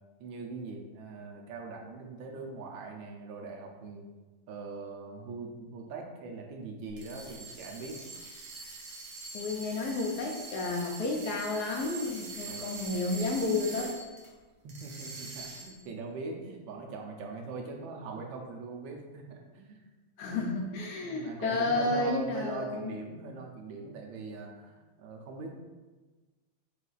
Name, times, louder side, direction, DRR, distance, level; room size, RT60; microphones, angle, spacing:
voice 1, 0.2-4.1 4.5-8.0 12.5-12.9 14.6-19.9 20.3-20.4 21.0-25.5, right 3 dB, 75° right, 2 dB, 1.3 m, -41 dB
sound 1, 6.9-14.3 14.7-15.9, right 3 dB, 60° right, 1.1 m, -44 dB
voice 2, 9.3-14.0 20.2-23.0, left 2 dB, 75° left, 0 dB, 0.9 m, -31 dB
6.4 x 2.5 x 2.4 m, 1.3 s
omnidirectional pair, 2.2 m